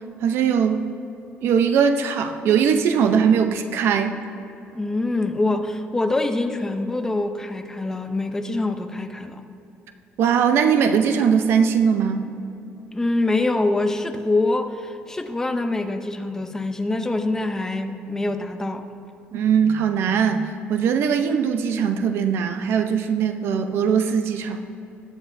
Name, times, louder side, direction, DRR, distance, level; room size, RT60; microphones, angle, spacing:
voice 1, 0.2-0.9 1.4-4.1 10.2-12.3 19.3-24.6, right 7 dB, 65° right, 7 dB, 0.7 m, -20 dB
voice 2, 4.7-9.4 12.9-18.9, left 2 dB, 10° left, 7 dB, 0.6 m, -25 dB
20.5 x 7.7 x 2.7 m, 2.9 s
cardioid pair, 150°, 4 cm